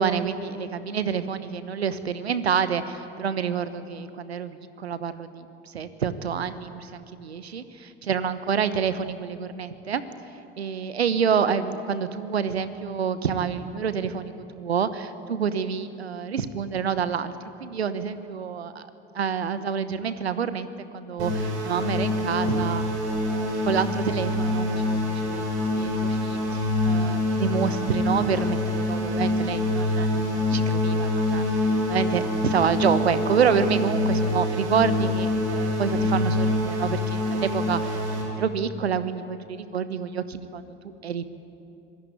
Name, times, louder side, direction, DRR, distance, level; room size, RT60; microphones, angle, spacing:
voice 1, 0.0-10.0 10.6-17.3 17.6-18.9 19.1-20.7 20.9-22.9 23.3-38.0 38.4-41.3, right 7 dB, 90° right, 13 dB, 1.1 m, -28 dB
sound 1, 21.2-38.2, left 1 dB, 65° right, 6.3 m, -25 dB
25.0 x 17.0 x 9.4 m, 2.9 s
hypercardioid pair, 70°, 31 cm